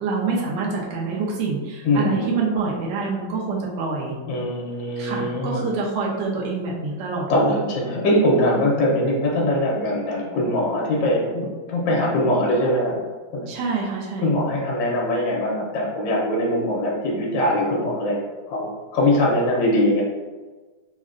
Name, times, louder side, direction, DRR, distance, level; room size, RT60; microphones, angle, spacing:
voice 1, 0.0-4.1 5.0-7.5 13.5-14.3, right 4 dB, 70° right, -3 dB, 1.2 m, -26 dB
voice 2, 1.8-2.3 4.3-5.7 7.3-13.0 13.3-13.5 14.2-18.2 18.5-20.0, left 1 dB, 75° left, -3 dB, 1.4 m, -22 dB
3.6 x 2.1 x 2.4 m, 1.3 s
omnidirectional pair, 2.2 m